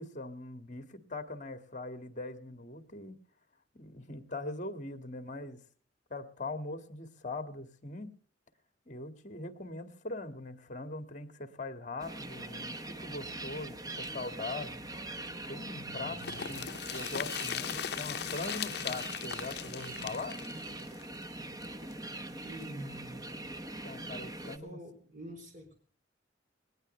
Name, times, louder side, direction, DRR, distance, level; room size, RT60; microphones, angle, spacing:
voice 1, 0.0-3.2 3.7-5.6 6.1-8.1 8.9-14.8 15.5-20.4 23.8-24.8, left 2 dB, 40° left, 10 dB, 1.9 m, -41 dB
sound 1, 12.0-24.6, right 2 dB, 20° right, 0.9 m, -42 dB
sound 2, 13.9-18.3 18.6-18.8 19.8-21.5, equal, 70° right, 3.0 m, -59 dB
sound 3, 16.2-21.9 22.2-22.3 22.6-22.7, left 9 dB, 60° left, 0.7 m, -39 dB
voice 2, 22.4-23.3 24.4-25.8, right 1 dB, 40° right, 5 dB, 3.9 m, -46 dB
20.5 x 19.0 x 3.3 m, 0.41 s
head